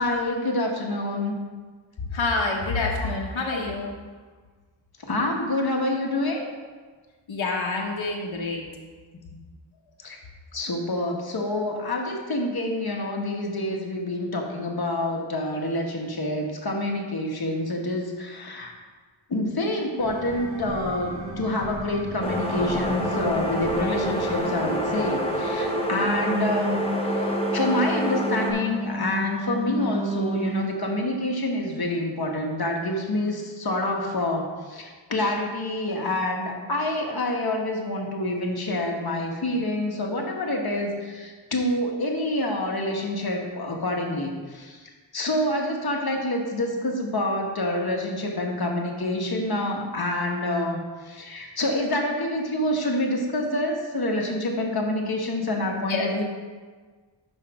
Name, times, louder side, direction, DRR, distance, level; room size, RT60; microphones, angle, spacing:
voice 1, 0.0-1.3 5.0-6.4 10.0-10.2 10.5-18.7 19.3-26.8 27.1-44.8 45.1-56.2, left 1 dB, 50° left, 1 dB, 1.3 m, -27 dB
voice 2, 2.1-3.9 7.3-8.7 55.9-56.1, left 3 dB, 75° left, -1 dB, 1.1 m, -27 dB
sound 1, 20.0-31.3 31.6-31.7, right 2 dB, 65° right, 2.1 m, -37 dB
sound 2, 22.2-28.5, equal, 10° left, 1.2 m, -27 dB
Wind instrument woodwind instrument, 26.0-30.8, right 1 dB, 15° right, 0.4 m, -30 dB
5.7 x 5.4 x 6.0 m, 1.4 s
wide cardioid pair, 70°, 46 cm